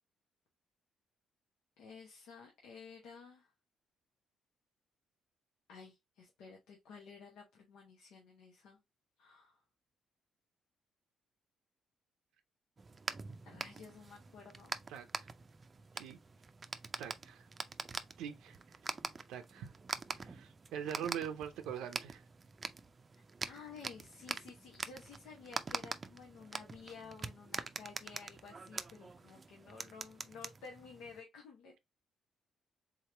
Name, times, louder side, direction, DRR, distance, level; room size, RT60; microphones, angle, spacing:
voice 1, 1.8-3.5 5.7-8.8 9.2-9.6 13.4-14.8 23.1-31.8, left 5 dB, 90° left, 1.0 m, -53 dB
sound 1, 12.8-31.2, right 4 dB, 35° right, 0.4 m, -45 dB
voice 2, 14.9-15.3 16.0-16.2 17.0-17.5 18.2-18.6 19.3-19.7 20.1-22.2, right 8 dB, 90° right, 0.5 m, -43 dB
3.6 x 3.0 x 3.2 m
cardioid pair, 90°, 0 cm